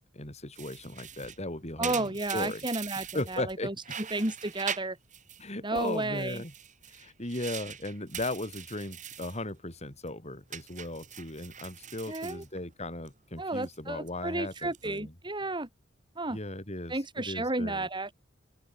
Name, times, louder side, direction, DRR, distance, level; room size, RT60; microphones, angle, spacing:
voice 1, 0.0-2.6 3.1-3.7 5.4-6.5 6.9-15.1 16.3-17.9, left 1 dB, 35° left, 7.2 m, -37 dB
sound 1, 0.5-3.5 3.8-5.4 5.7-9.4 9.7-10.1 10.5-13.1 13.4-13.8 14.4-15.0, right 8 dB, 40° right, 6.3 m, -42 dB
voice 2, 1.8-3.7 4.1-5.0 5.6-6.4 12.1-12.4 13.4-15.7 16.2-16.4 16.9-18.1, right 2 dB, 25° right, 3.6 m, -32 dB
open air
head